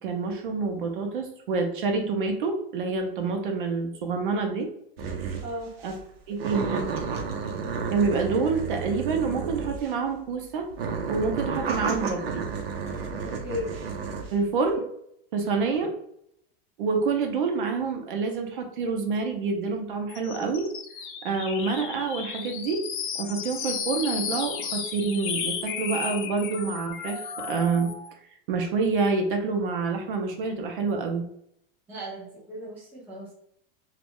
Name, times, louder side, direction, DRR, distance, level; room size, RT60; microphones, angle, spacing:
voice 1, 0.0-4.7 5.8-5.9 6.3-6.8 7.9-10.7 11.1-12.4 14.3-14.9 15.3-15.9 16.8-20.7 21.2-22.8 23.2-27.9 28.5-31.3, right 4 dB, 60° right, 4 dB, 0.7 m, -27 dB
sound 1, 5.0-5.5 5.8-6.0 6.4-10.0 10.7-14.3, right 5 dB, 90° right, 0.8 m, -31 dB
voice 2, 5.4-5.8 13.4-13.7 15.4-15.7 31.9-33.3, left 1 dB, 5° right, -6 dB, 0.5 m, -36 dB
sound 2, 20.1-28.1, left 7 dB, 55° left, 0.5 m, -34 dB
3.0 x 2.4 x 3.6 m, 0.70 s
supercardioid pair, 180°, 29 cm